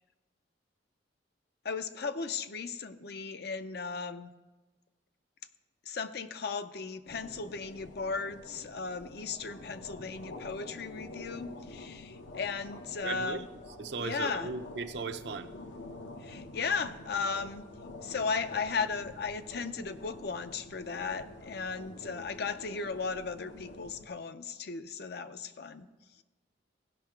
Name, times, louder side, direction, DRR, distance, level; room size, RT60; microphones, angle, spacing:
voice 1, 1.6-4.3 5.9-13.5 14.0-14.5 16.2-17.7 18.0-25.9, left 5 dB, 55° left, 11 dB, 0.5 m, -36 dB
sound 1, 7.0-24.1, left 2 dB, 75° left, 0.8 m, -48 dB
voice 2, 13.0-13.4 13.8-15.5, right 4 dB, 60° right, 9 dB, 0.6 m, -37 dB
16.0 x 5.7 x 4.4 m, 1.2 s
head